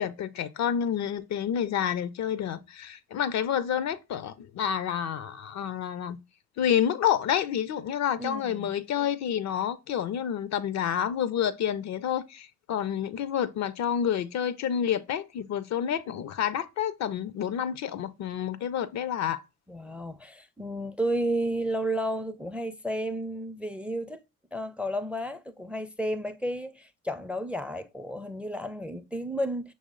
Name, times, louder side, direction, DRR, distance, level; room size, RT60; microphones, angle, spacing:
voice 1, 0.0-6.2 6.6-19.4, left 9 dB, 55° left, 0.4 m, -29 dB
voice 2, 8.2-8.7 19.7-24.2 24.5-29.7, right 1 dB, 5° right, 0.4 m, -32 dB
6.1 x 2.1 x 3.6 m
hypercardioid pair, 40°, 33 cm